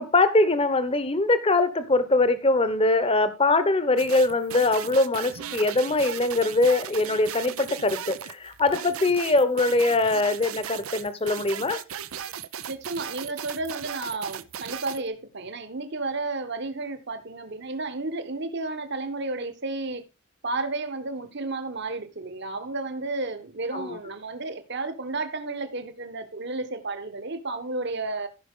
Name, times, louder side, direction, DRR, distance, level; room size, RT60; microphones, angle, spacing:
voice 1, 0.0-11.8 23.7-24.0, left 2 dB, 30° left, 1.0 m, -22 dB
sound 1, 4.0-15.0, right 9 dB, 90° right, 0.7 m, -37 dB
voice 2, 12.7-20.0 20.4-28.3, right 3 dB, 55° right, 1.4 m, -32 dB
14.5 x 5.7 x 3.7 m
head